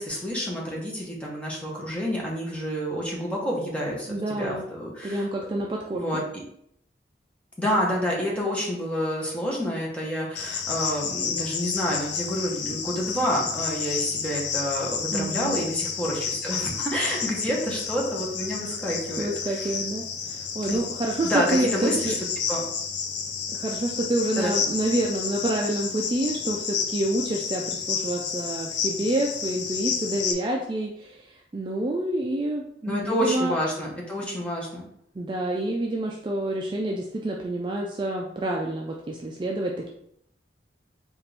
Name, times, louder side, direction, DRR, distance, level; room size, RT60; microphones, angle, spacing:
voice 1, 0.0-5.3 5.9-6.2 7.6-19.7 20.7-20.8 21.2-22.1 22.5-22.6 24.4-24.5 32.8-34.8, equal, 5° left, -4 dB, 0.9 m, -28 dB
voice 2, 4.1-4.6 5.0-6.0 15.1-15.6 19.2-22.2 23.5-33.5 35.2-39.9, right 1 dB, 25° right, 0 dB, 0.3 m, -28 dB
Cricket, 10.4-30.3, left 6 dB, 80° left, 0.5 m, -31 dB
4.3 x 2.5 x 3.3 m, 0.72 s
head